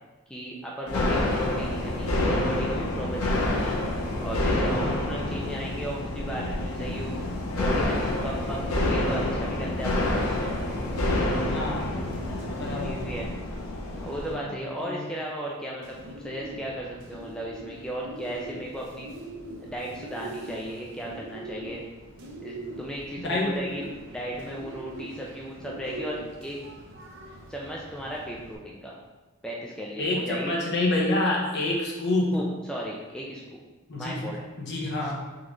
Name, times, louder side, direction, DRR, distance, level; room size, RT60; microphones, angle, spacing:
voice 1, 0.3-3.8 4.2-7.2 7.6-10.5 12.6-13.3 14.0-19.1 19.6-21.8 22.4-23.8 24.1-26.6 27.5-29.0 29.4-30.5 32.3-33.6 33.9-34.4, equal, 5° left, -4 dB, 0.3 m, -35 dB
sound 1, 0.9-14.3, left 1 dB, 90° left, 0.9 m, -28 dB
voice 2, 0.9-1.3 4.6-5.0 11.5-11.9 12.5-13.0 14.3-14.5 14.8-15.0 23.2-23.5 30.0-32.3 33.9-34.2 34.6-35.1, left 2 dB, 55° left, -3 dB, 1.0 m, -28 dB
Bird, 15.8-28.5, right 1 dB, 60° right, 0.7 m, -42 dB
3.8 x 3.8 x 3.1 m, 1.2 s
head